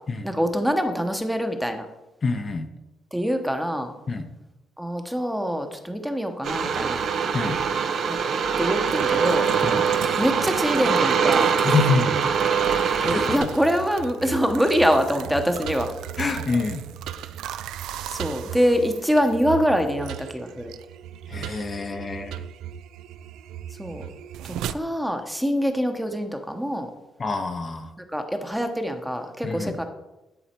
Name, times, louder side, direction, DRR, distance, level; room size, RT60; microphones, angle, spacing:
voice 1, 0.2-1.9 3.1-3.9 4.8-7.0 8.1-8.2 8.6-9.5 10.2-11.5 13.0-15.9 18.1-20.7 23.8-24.0 24.4-26.9 28.1-29.8, equal, 5° right, 6 dB, 0.8 m, -24 dB
voice 2, 2.2-2.7 4.1-4.3 7.3-7.6 9.6-9.9 11.6-12.2 13.0-13.5 16.2-16.8 21.3-22.3 27.2-27.9 29.4-29.8, left 4 dB, 35° left, 6 dB, 0.6 m, -26 dB
sound 1, 6.4-13.4, right 6 dB, 60° right, 0.7 m, -23 dB
sound 2, 8.9-24.7, right 10 dB, 90° right, 0.3 m, -36 dB
10.0 x 4.0 x 4.4 m, 0.99 s
cardioid pair, 100°, 0 cm